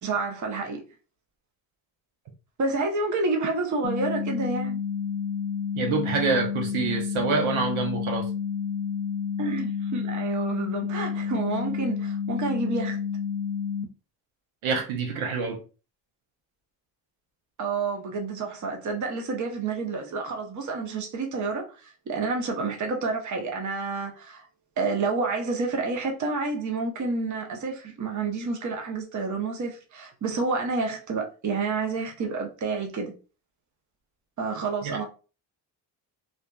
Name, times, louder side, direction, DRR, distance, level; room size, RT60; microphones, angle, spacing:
voice 1, 0.0-0.8 2.6-4.8 9.4-13.0 17.6-24.5 24.8-33.1 34.4-35.0, right 3 dB, 35° right, 0.7 m, -29 dB
sound 1, 3.8-13.8, left 7 dB, 85° left, 0.6 m, -30 dB
voice 2, 5.7-8.3 14.6-15.6 34.8-35.0, right 4 dB, 70° right, 0.8 m, -26 dB
2.5 x 2.2 x 2.2 m
hypercardioid pair, 50°, 50 cm